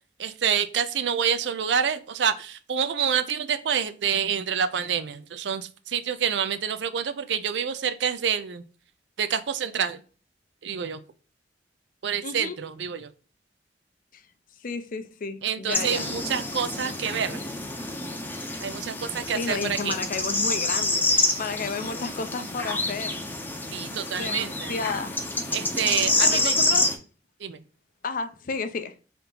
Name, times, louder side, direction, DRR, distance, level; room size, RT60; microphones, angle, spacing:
voice 1, 0.2-8.6 9.2-10.0 10.6-11.0 12.0-13.1 15.4-17.4 18.6-20.0 21.2-21.3 23.7-24.7 25.5-26.6 27.4-27.6, right 7 dB, 75° right, 0.4 m, -27 dB
voice 2, 12.2-12.6 14.1-14.2 14.6-16.1 19.3-23.1 24.2-25.2 26.2-26.9 28.0-28.9, left 4 dB, 50° left, 0.5 m, -32 dB
sound 1, 15.7-27.0, left 2 dB, 10° left, 0.6 m, -27 dB
3.5 x 2.8 x 3.9 m
head